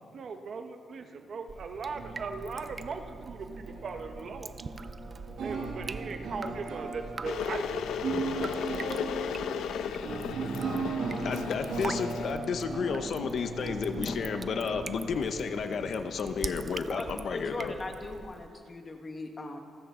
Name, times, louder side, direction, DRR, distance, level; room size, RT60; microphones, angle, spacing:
voice 1, 0.1-4.6 5.4-9.1 10.4-10.7, right 4 dB, 45° right, 6 dB, 1.0 m, -39 dB
Drip, 1.5-18.5, right 4 dB, 25° right, 0.4 m, -44 dB
sound 1, 1.8-16.4, right 3 dB, 70° right, 2.6 m, -38 dB
Water / Boiling, 7.2-12.4, left 8 dB, 80° left, 0.7 m, -35 dB
voice 2, 10.8-17.7, left 5 dB, 50° left, 7 dB, 0.8 m, -32 dB
voice 3, 16.9-19.6, left 2 dB, 25° left, 3 dB, 1.5 m, -39 dB
27.5 x 13.5 x 3.8 m, 2.1 s
cardioid pair, 165°, 0 cm